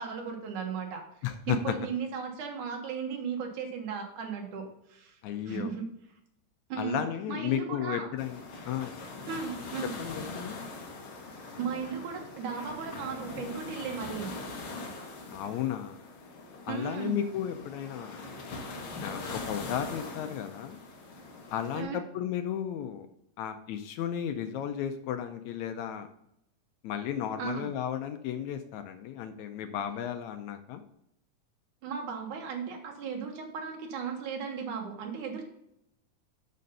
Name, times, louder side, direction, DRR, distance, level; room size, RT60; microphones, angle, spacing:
voice 1, 0.0-1.0 1.5-5.2 5.5-5.9 6.7-7.0 7.3-8.1 9.3-9.9 11.4-14.3 16.7-17.2 21.7-22.0 27.4-27.7 31.8-35.4, right 6 dB, 75° right, 2 dB, 2.9 m, -36 dB
voice 2, 1.2-1.6 5.2-5.7 6.8-9.0 10.0-10.6 15.3-16.0 16.7-18.2 19.0-20.8 21.5-23.1 23.4-26.1 26.8-30.8, left 10 dB, 75° left, 8 dB, 1.8 m, -34 dB
sound 1, 8.2-21.8, left 3 dB, 55° left, 1.7 m, -42 dB
6.7 x 6.4 x 5.3 m, 0.78 s
omnidirectional pair, 3.6 m